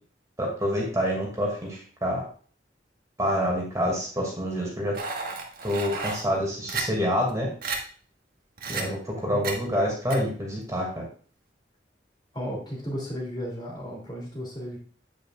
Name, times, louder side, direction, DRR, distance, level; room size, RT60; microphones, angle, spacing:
voice 1, 0.4-2.2 3.2-5.0 5.6-7.5 8.7-11.1, equal, 20° right, -2 dB, 2.3 m, -27 dB
sound 1, 4.9-6.2 6.7-6.8 7.3-7.4 7.6-7.8 8.6-8.8 9.4-9.6 10.1-10.2, right 4 dB, 55° right, 1.6 m, -32 dB
voice 2, 12.3-14.8, equal, 25° left, -2 dB, 3.0 m, -34 dB
9.4 x 8.9 x 2.5 m, 0.42 s
head